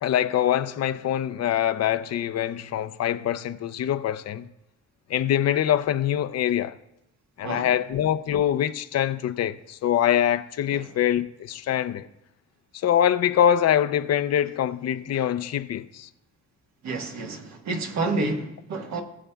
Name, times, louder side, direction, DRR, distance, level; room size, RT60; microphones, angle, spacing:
voice 1, 0.0-4.4 5.1-6.7 7.4-12.1 12.8-16.1, left 10 dB, 55° left, 0.5 m, -24 dB
voice 2, 7.4-7.7 10.7-10.9 16.8-19.0, right 3 dB, 65° right, 1.4 m, -29 dB
19.5 x 7.2 x 2.3 m
cardioid pair, 90°, 30 cm